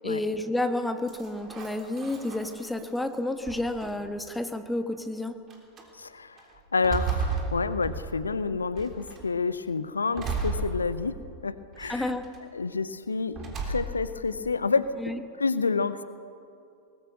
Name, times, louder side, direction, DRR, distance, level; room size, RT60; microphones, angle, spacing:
voice 1, 0.0-5.4 11.8-12.3 15.0-15.2, left 1 dB, 5° left, 8 dB, 1.3 m, -30 dB
sound 1, 1.1-3.0 3.4-4.2 4.9-5.0 5.5-5.8 6.4-8.3 8.8-9.3 10.2-11.3 11.8-12.4 13.3-14.2, right 4 dB, 30° right, 3.5 m, -34 dB
voice 2, 6.0-6.4 6.7-11.2 11.4-12.1 12.5-14.9 15.4-16.0, left 4 dB, 75° left, 14 dB, 0.7 m, -29 dB
21.5 x 20.0 x 6.2 m, 2.6 s
figure-of-eight pair, 90°, 0 cm